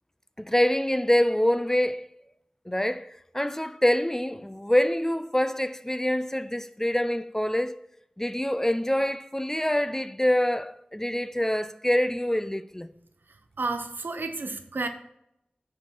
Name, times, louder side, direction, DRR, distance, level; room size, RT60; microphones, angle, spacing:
voice 1, 0.4-2.1 2.7-7.8 8.2-12.9, left 1 dB, 15° left, 0.4 m, -25 dB
voice 2, 13.6-14.9, right 3 dB, 85° right, 0.8 m, -31 dB
9.3 x 4.6 x 4.5 m
wide cardioid pair, 50°, 3 cm